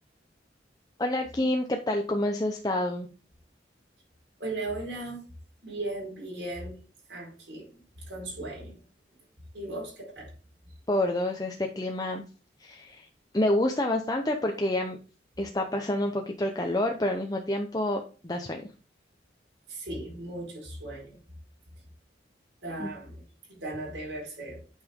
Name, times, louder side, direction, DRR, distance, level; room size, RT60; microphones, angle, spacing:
voice 1, 1.0-3.1 10.9-12.2 12.6-13.1 13.3-15.0 15.4-18.6 22.8-22.9, left 1 dB, 20° left, 0.7 m, -28 dB
voice 2, 4.4-5.2 5.6-6.8 7.1-7.7 8.1-8.8 9.5-10.3 19.7-21.1 22.6-23.2 23.5-24.6, right 2 dB, 75° right, 4.9 m, -37 dB
9.0 x 5.6 x 3.7 m
head